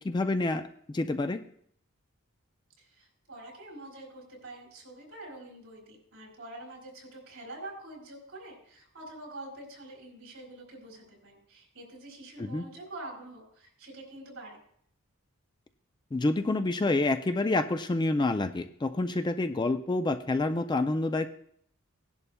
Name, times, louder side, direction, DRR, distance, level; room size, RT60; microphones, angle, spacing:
voice 1, 0.0-1.4 12.4-12.6 16.1-21.3, left 2 dB, 20° left, 9 dB, 0.3 m, -28 dB
voice 2, 2.8-14.6, right 2 dB, 65° right, -2 dB, 4.5 m, -46 dB
17.5 x 11.0 x 2.2 m, 0.65 s
head